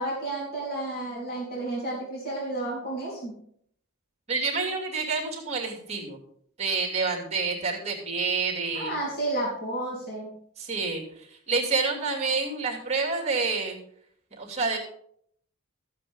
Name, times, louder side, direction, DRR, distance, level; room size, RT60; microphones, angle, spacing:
voice 1, 0.0-3.4 8.7-10.3, right 1 dB, 45° left, -5 dB, 3.7 m, -31 dB
voice 2, 4.3-6.2 6.6-8.9 10.6-13.8 14.4-14.8, right 4 dB, 30° right, 0 dB, 2.5 m, -28 dB
13.5 x 8.2 x 3.7 m, 0.67 s
head